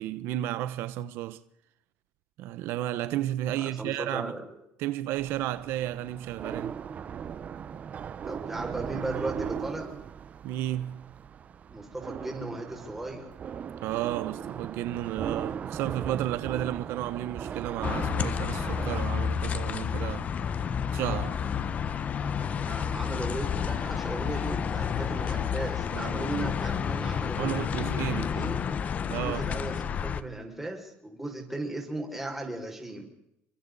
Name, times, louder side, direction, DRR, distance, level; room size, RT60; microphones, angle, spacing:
voice 1, 0.0-1.4 2.4-4.3 4.8-6.7 10.4-11.1 13.8-20.3 20.9-21.4 25.9-26.1 27.4-28.5 29.1-29.6, right 13 dB, 75° right, 0.9 m, -32 dB
voice 2, 3.6-4.4 6.9-7.0 8.2-10.0 11.7-13.3 22.5-27.6 28.0-28.6 29.1-33.1, right 2 dB, 5° right, 5.8 m, -36 dB
sound 1, 5.2-19.0, right 7 dB, 40° right, 0.9 m, -38 dB
sound 2, 17.8-30.2, left 7 dB, 40° left, 1.2 m, -30 dB
29.5 x 23.5 x 4.1 m
cardioid pair, 135°, 4 cm